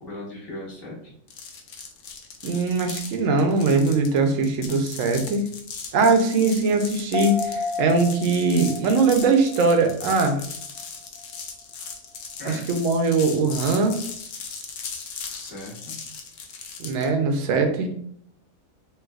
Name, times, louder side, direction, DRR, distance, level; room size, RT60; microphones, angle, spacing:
voice 1, 0.0-1.1 12.4-12.7 15.3-16.0, left 1 dB, 20° left, -6 dB, 0.9 m, -38 dB
sound 1, 1.3-17.1, left 5 dB, 65° left, 0.8 m, -38 dB
voice 2, 2.4-5.4 5.9-10.4 12.4-14.0 16.8-17.9, right 3 dB, 70° right, 6 dB, 0.9 m, -21 dB
sound 2, 7.1-10.8 11.2-11.3, left 4 dB, 85° left, 1.1 m, -33 dB
3.2 x 3.0 x 2.3 m, 0.65 s
omnidirectional pair, 1.5 m